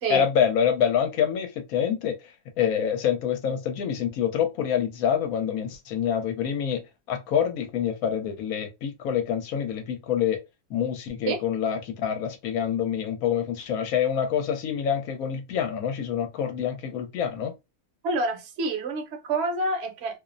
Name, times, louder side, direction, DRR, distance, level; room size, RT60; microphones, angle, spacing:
voice 1, 0.1-2.1 2.6-6.8 7.1-10.4 10.7-17.5, left 8 dB, 75° left, 1.0 m, -26 dB
voice 2, 18.0-20.2, right 2 dB, 55° right, 0.8 m, -28 dB
2.6 x 2.0 x 2.5 m
omnidirectional pair, 1.6 m